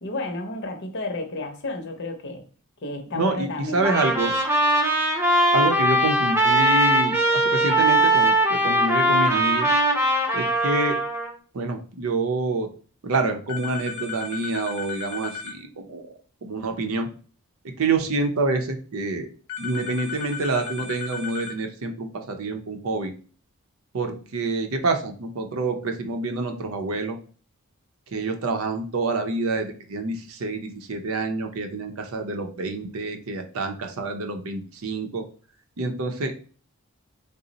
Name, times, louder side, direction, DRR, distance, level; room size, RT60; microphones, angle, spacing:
voice 1, 0.0-2.4 2.8-3.9, left 2 dB, 55° left, 0.7 m, -31 dB
voice 2, 3.1-4.3 5.5-9.7 10.3-11.0 11.5-12.7 13.0-16.1 16.4-17.1 17.6-19.3 19.6-23.1 23.9-27.2 28.1-35.2 35.8-36.3, right 3 dB, 75° right, 0.6 m, -27 dB
Trumpet, 3.8-11.3, right 1 dB, 10° right, 0.7 m, -20 dB
sound 1, 13.5-15.6 19.5-21.6, left 6 dB, 90° left, 0.6 m, -35 dB
3.8 x 2.0 x 3.9 m
head